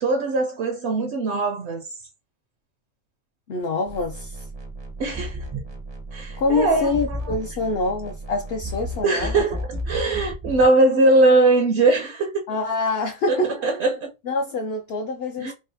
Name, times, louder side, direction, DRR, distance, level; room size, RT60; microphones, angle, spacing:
voice 1, 0.0-1.9 5.0-5.4 6.1-7.2 9.0-12.3 13.3-14.1 15.4-15.5, right 2 dB, 65° right, 0.8 m, -20 dB
voice 2, 3.5-4.5 6.4-9.4 12.5-13.5 14.2-15.5, left 3 dB, 65° left, 0.7 m, -25 dB
sound 1, 3.9-10.7, equal, 35° right, 0.4 m, -33 dB
3.8 x 2.1 x 2.6 m
omnidirectional pair, 1.4 m